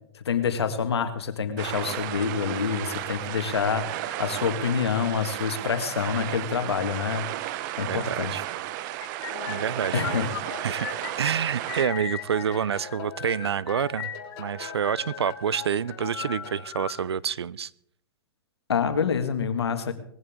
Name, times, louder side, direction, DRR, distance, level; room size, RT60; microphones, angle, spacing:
voice 1, 0.2-8.3 9.9-10.3 18.7-19.9, left 6 dB, 85° left, 1.9 m, -27 dB
sound 1, 1.6-11.8, right 14 dB, 50° right, 1.1 m, -34 dB
voice 2, 7.9-8.4 9.5-10.2 10.6-10.9 11.2-14.1 14.4-17.7, right 8 dB, 90° right, 0.5 m, -28 dB
sound 2, 9.0-17.0, left 10 dB, 65° left, 5.3 m, -38 dB
sound 3, 9.3-16.7, left 6 dB, 45° left, 4.3 m, -42 dB
20.5 x 15.5 x 3.7 m
hypercardioid pair, 120°, 13 cm